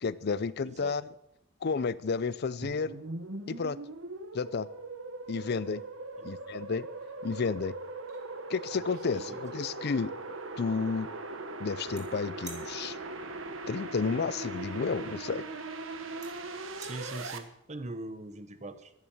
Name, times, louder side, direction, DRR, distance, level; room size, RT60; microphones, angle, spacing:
voice 1, 0.0-1.0 1.6-3.0 3.5-3.8 4.3-4.7 5.3-5.8 6.2-6.9 7.2-7.7 8.5-10.1 10.6-11.1 11.6-13.0 13.7-15.4, left 5 dB, 55° left, 17 dB, 0.5 m, -31 dB
voice 2, 0.6-1.0 6.2-6.3 9.1-9.4 16.8-18.9, right 2 dB, 35° right, 11 dB, 1.0 m, -42 dB
sound 1, 2.6-17.4, right 3 dB, 90° right, 1.4 m, -40 dB
sound 2, 8.1-8.2 8.5-10.0 12.0-12.1 12.4-12.7 14.5-14.6 15.6-15.7 16.2-16.3 16.7-17.0, right 2 dB, 20° right, 3.7 m, -48 dB
12.0 x 10.5 x 7.1 m, 0.79 s
head